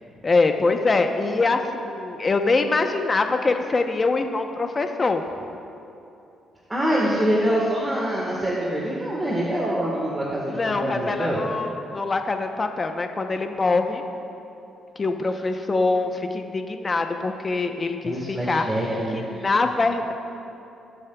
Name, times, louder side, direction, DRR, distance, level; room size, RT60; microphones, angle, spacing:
voice 1, 0.2-5.2 10.5-14.0 15.0-18.7 19.1-20.1, left 3 dB, 30° left, 5 dB, 0.8 m, -24 dB
voice 2, 6.7-11.4 18.0-19.4, right 1 dB, 20° right, -4 dB, 1.5 m, -25 dB
20.5 x 7.2 x 2.3 m, 2.7 s
cardioid pair, 90°, 0 cm